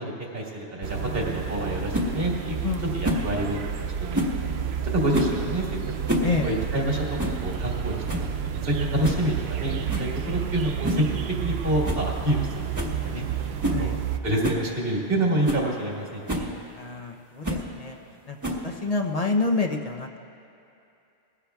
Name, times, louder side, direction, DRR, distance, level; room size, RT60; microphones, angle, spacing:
voice 1, 0.0-2.6 2.9-4.2 4.4-4.5 4.9-5.7 6.2-7.9 8.6-11.0 11.4-13.2 13.8-13.9 14.2-16.5, right 1 dB, 60° right, -3 dB, 2.0 m, -27 dB
sound 1, 0.8-14.2, right 8 dB, 75° right, 0.8 m, -31 dB
sound 2, 1.9-2.1 3.0-3.3 4.1-4.4 5.1-5.4 5.9-6.3 6.6-6.7 7.2-7.4 7.8-7.9 8.1-8.3 9.0-9.3 9.9-10.1 10.8-11.1 11.4-11.5 11.8-12.1 12.3-12.4 12.7-13.0 13.6-13.8 14.4-14.6 15.1-15.2 15.4-15.7 16.3-16.5 17.4-17.7 18.4-18.8, equal, 15° right, 1.1 m, -27 dB
voice 2, 2.6-2.9 6.2-6.6 13.7-14.0 16.8-18.0 18.3-20.2, left 3 dB, 45° left, 3 dB, 0.6 m, -28 dB
20.0 x 15.5 x 2.3 m, 2.7 s
omnidirectional pair, 1.1 m